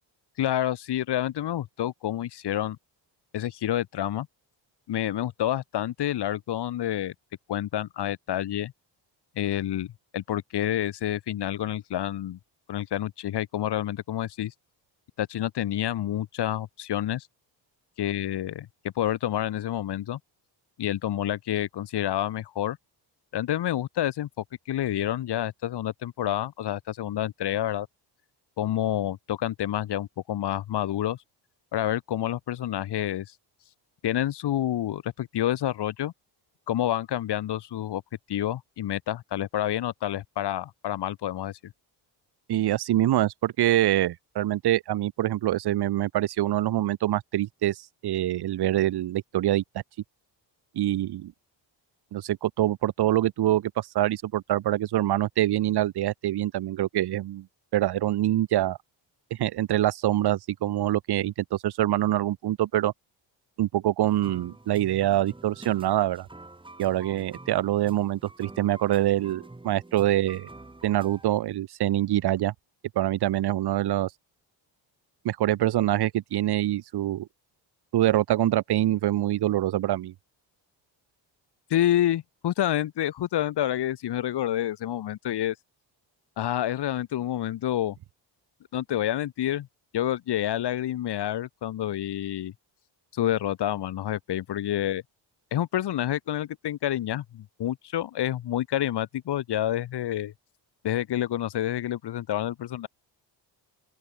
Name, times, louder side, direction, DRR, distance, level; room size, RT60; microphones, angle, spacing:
voice 1, 0.4-2.8 3.3-4.3 4.9-7.1 7.5-8.7 9.4-12.4 12.7-14.5 15.2-17.3 18.0-18.7 19.0-20.2 20.8-22.8 23.3-27.9 28.6-31.2 31.7-33.3 34.0-36.1 36.7-38.0 38.3-41.7 81.7-85.6 86.4-88.0 88.7-89.7 89.9-92.5 93.1-95.0 95.5-100.3 100.8-102.9, left 12 dB, 60° left, 1.1 m, -28 dB
voice 2, 42.5-49.6 50.7-51.3 52.1-57.5 57.7-58.8 59.3-62.9 63.6-66.3 66.8-70.5 70.8-72.5 73.0-74.1 75.2-77.3 77.9-80.1, right 13 dB, 60° right, 0.7 m, -25 dB
sound 1, 64.0-71.3, right 2 dB, 10° right, 1.4 m, -47 dB
open air
cardioid pair, 85°, 46 cm